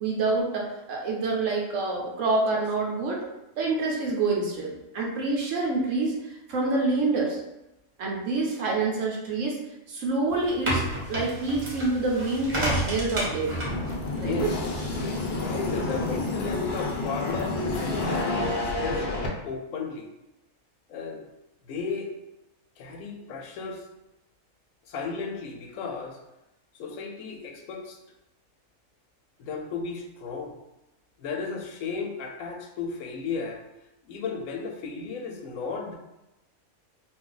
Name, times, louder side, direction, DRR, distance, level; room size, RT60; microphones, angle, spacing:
voice 1, 0.0-3.2 3.6-6.1 6.5-7.4 8.0-9.6 9.9-13.6 14.1-14.5, right 3 dB, 70° right, -1 dB, 1.0 m, -27 dB
sound 1, 10.3-16.5, right 1 dB, 25° right, 0.8 m, -32 dB
sound 2, 13.6-19.3, left 2 dB, 60° left, 0.7 m, -29 dB
voice 2, 14.2-14.6 15.0-19.1 19.4-20.1 20.9-21.2 21.7-22.1 22.8-23.8 24.9-26.2 26.7-28.0 29.4-30.5 31.2-33.6 34.1-35.9, left 5 dB, 80° left, 2 dB, 1.0 m, -34 dB
2.5 x 2.4 x 3.8 m, 0.95 s
omnidirectional pair, 1.4 m